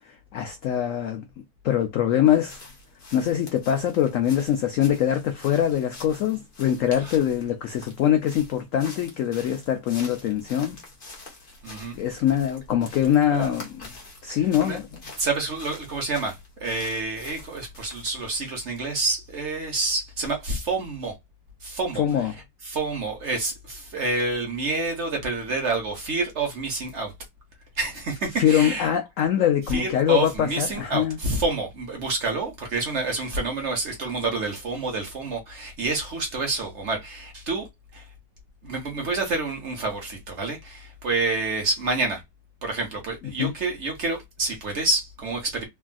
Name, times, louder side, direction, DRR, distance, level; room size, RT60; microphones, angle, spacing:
voice 1, 0.1-1.2 1.6-2.6 3.1-10.8 11.9-13.9 14.2-15.0 22.0-22.3 28.4-31.2 43.4-43.5, left 10 dB, 80° left, 0.7 m, -23 dB
sound 1, 2.3-18.4, left 2 dB, 40° left, 0.9 m, -46 dB
voice 2, 11.6-12.0 13.3-13.5 14.6-14.8 15.2-21.2 21.6-22.0 22.6-27.1 27.8-28.9 29.7-37.7 37.9-38.0 38.6-42.2 42.6-45.7, right 3 dB, 50° right, 1.0 m, -28 dB
3.4 x 2.4 x 2.2 m
omnidirectional pair, 1.9 m